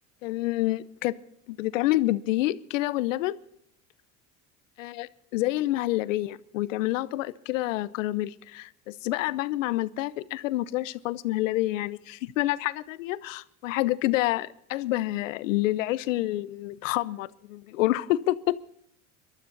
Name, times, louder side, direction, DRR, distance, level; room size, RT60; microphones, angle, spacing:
voice 1, 0.2-1.1 1.5-3.4 4.8-18.6, left 17 dB, 90° left, 0.8 m, -28 dB
22.0 x 12.5 x 4.0 m
supercardioid pair, 95°, 37 cm